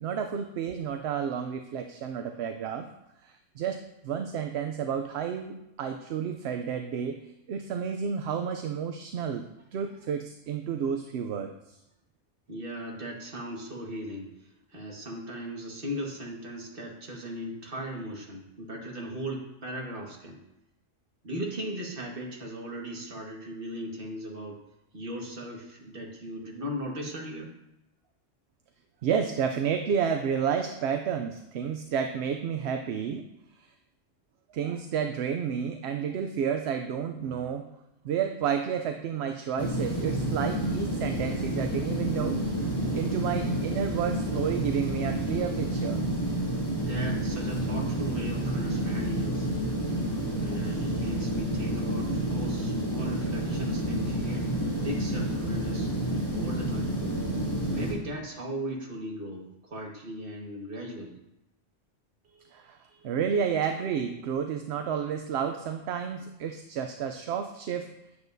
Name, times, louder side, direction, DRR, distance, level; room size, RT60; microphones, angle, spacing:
voice 1, 0.0-2.9 3.2-7.2 7.5-11.8 29.0-33.3 33.6-33.7 34.5-37.6 38.0-42.5 42.8-46.0 62.5-67.9, right 7 dB, 65° right, 5 dB, 0.8 m, -31 dB
voice 2, 12.5-14.3 14.7-20.4 21.2-24.6 24.9-27.5 46.7-49.6 50.4-55.9 56.3-56.9 57.7-61.2, equal, 50° right, -1 dB, 1.8 m, -38 dB
sound 1, 39.6-57.9, right 1 dB, 20° left, 2.0 m, -29 dB
9.5 x 8.3 x 2.7 m, 0.88 s
omnidirectional pair, 1.2 m